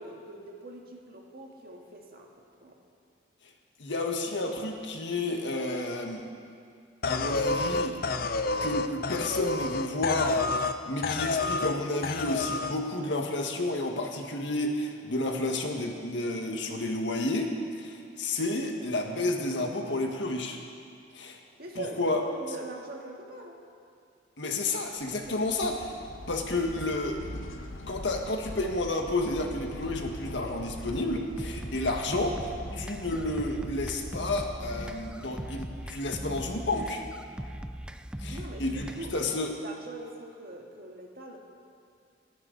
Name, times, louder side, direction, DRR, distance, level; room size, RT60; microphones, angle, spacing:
voice 1, 0.0-2.3 2.6-2.8 21.6-23.6 25.3-25.5 38.3-41.4, right 2 dB, 50° right, 0 dB, 2.0 m, -43 dB
voice 2, 3.8-6.2 7.0-8.0 8.6-20.6 21.1-21.4 21.7-22.2 24.4-25.9 26.3-27.2 27.9-37.0 38.2-38.9 39.1-39.5, left 2 dB, 65° left, 2 dB, 1.7 m, -31 dB
sound 1, 7.0-10.8 11.0-11.8 12.0-12.7, left 3 dB, 50° left, 0.6 m, -29 dB
sound 2, 25.0-36.0, left 1 dB, 90° left, 1.0 m, -43 dB
sound 3, 31.4-39.4, right 1 dB, 5° right, 0.3 m, -39 dB
29.5 x 10.5 x 4.1 m, 2.3 s
head